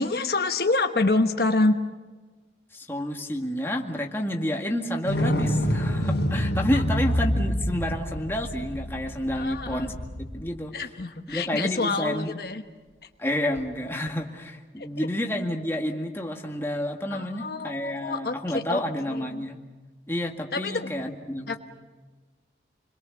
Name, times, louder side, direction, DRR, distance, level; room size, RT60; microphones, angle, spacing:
voice 1, 0.0-1.8 6.7-6.8 9.3-9.9 10.7-12.6 14.8-15.1 17.1-18.8 19.1-19.4 20.5-20.9 21.5-21.6, left 2 dB, 60° left, 6 dB, 1.1 m, -27 dB
voice 2, 2.7-10.0 10.3-10.7 11.3-12.4 13.2-19.6 20.1-21.6, left 1 dB, 15° left, 1 dB, 2.0 m, -29 dB
sound 1, 5.1-10.5 13.6-13.7, equal, 85° left, 3.8 m, -27 dB
28.5 x 22.0 x 7.3 m, 1.3 s
head